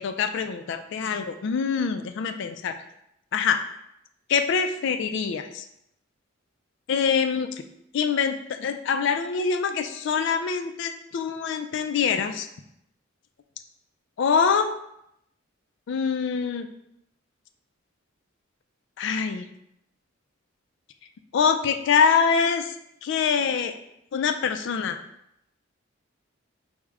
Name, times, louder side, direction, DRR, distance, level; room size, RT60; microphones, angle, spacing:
voice 1, 0.0-2.8 3.3-3.6 4.3-5.6 6.9-7.6 7.9-12.5 14.2-14.7 15.9-16.7 19.0-19.4 21.3-22.7 23.0-23.7 24.1-25.0, left 6 dB, 60° left, 8 dB, 0.3 m, -24 dB
4.7 x 2.1 x 3.4 m, 0.79 s
head